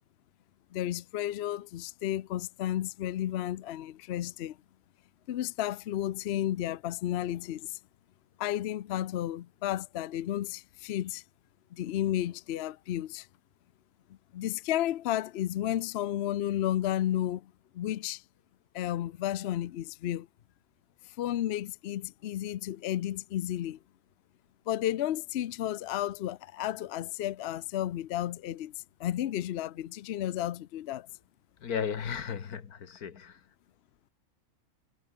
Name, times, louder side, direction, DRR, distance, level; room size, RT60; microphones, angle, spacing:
voice 1, 0.7-4.6 5.3-7.8 8.4-11.2 11.7-13.3 14.3-18.2 18.7-20.3 21.2-23.8 24.7-28.7 29.0-31.1, left 12 dB, 60° left, 0.7 m, -32 dB
voice 2, 31.6-33.4, left 7 dB, 85° left, 2.0 m, -35 dB
omnidirectional pair, 1.6 m